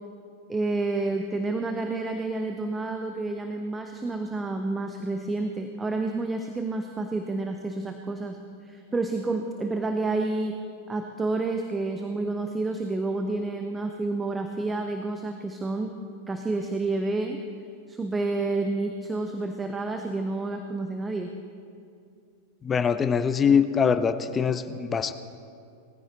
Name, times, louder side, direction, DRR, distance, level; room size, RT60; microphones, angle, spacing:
voice 1, 0.5-10.6 10.9-15.9 16.3-17.4 17.9-21.3, right 3 dB, 15° right, 5 dB, 0.9 m, -29 dB
voice 2, 22.6-25.1, left 6 dB, 20° left, 12 dB, 0.7 m, -23 dB
19.5 x 14.5 x 4.1 m, 2.4 s
figure-of-eight pair, 90°, 0 cm